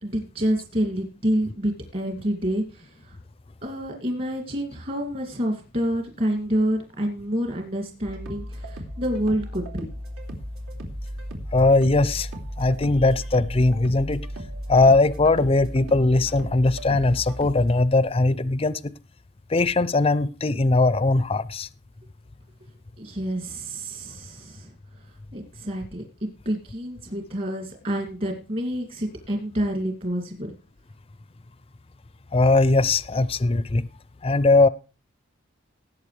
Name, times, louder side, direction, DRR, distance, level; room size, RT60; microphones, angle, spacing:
voice 1, 0.0-3.2 3.6-9.8 23.0-24.7 25.3-30.5, equal, 40° right, 2.4 m, -28 dB
sound 1, 8.1-17.7, equal, 80° right, 3.0 m, -35 dB
voice 2, 11.5-12.3 12.6-14.3 14.7-18.8 19.5-21.7 32.3-33.9 34.2-34.7, left 2 dB, 25° left, 0.5 m, -20 dB
18.0 x 8.2 x 3.3 m
head